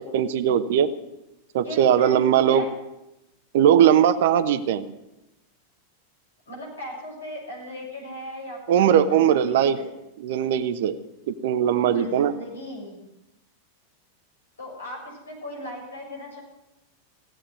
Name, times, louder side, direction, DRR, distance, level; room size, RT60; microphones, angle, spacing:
voice 1, 0.1-0.9 1.5-2.6 3.5-4.8 8.7-9.8 10.2-11.0 11.3-12.3, right 9 dB, 55° right, 12 dB, 1.0 m, -19 dB
voice 2, 1.6-2.7 6.5-9.9 11.6-13.0 14.6-16.4, equal, 75° left, -2 dB, 7.5 m, -37 dB
16.5 x 8.8 x 9.6 m, 0.92 s
figure-of-eight pair, 90°, 0 cm